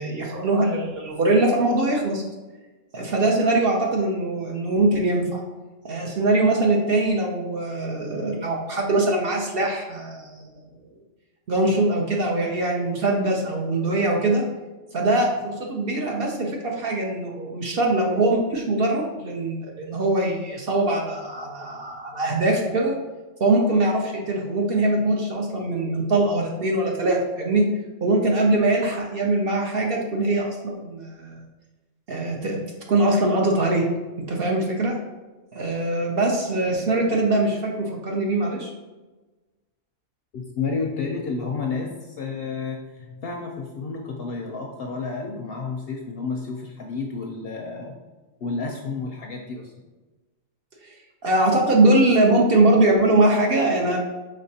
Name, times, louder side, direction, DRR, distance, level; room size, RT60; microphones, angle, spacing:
voice 1, 0.0-2.2 2.9-5.4 5.8-10.5 11.5-14.4 14.9-22.9 23.4-27.6 28.0-31.3 32.1-32.6 32.9-33.8 34.3-34.9 35.5-38.7 50.8-50.9 51.2-54.0, right 2 dB, 55° right, 0 dB, 0.7 m, -22 dB
voice 2, 40.3-48.0 48.4-49.7, left 4 dB, 65° left, 1 dB, 0.6 m, -31 dB
5.2 x 3.8 x 2.7 m, 1.2 s
omnidirectional pair, 1.4 m